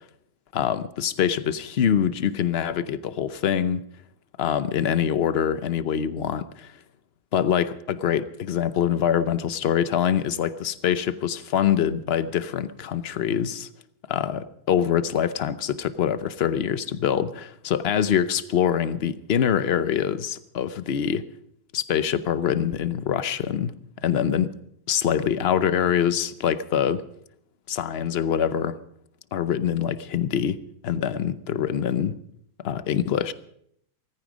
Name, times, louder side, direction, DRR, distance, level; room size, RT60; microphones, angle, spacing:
voice 1, 0.5-3.8 4.4-6.7 7.3-13.7 14.1-21.3 21.7-23.7 24.0-24.5 24.9-27.0 27.7-28.8 29.3-32.2 32.6-33.3, left 9 dB, 55° left, 0.8 m, -24 dB
18.0 x 14.5 x 5.1 m
omnidirectional pair, 1.6 m